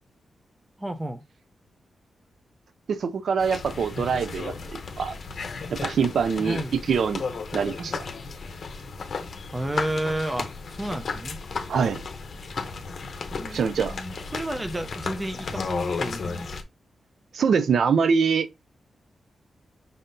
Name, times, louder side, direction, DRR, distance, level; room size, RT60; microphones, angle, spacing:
voice 1, 0.8-1.2 6.4-6.8 9.5-11.4 13.3-16.5, right 1 dB, 15° right, 0.5 m, -31 dB
voice 2, 2.9-5.2 5.7-7.2 7.5-8.1 11.7-12.0 13.5-14.0 17.3-18.5, right 6 dB, 70° right, 0.3 m, -24 dB
sound 1, 3.4-16.6, left 4 dB, 50° left, 0.7 m, -34 dB
5.4 x 3.6 x 2.6 m
wide cardioid pair, 145°, 0 cm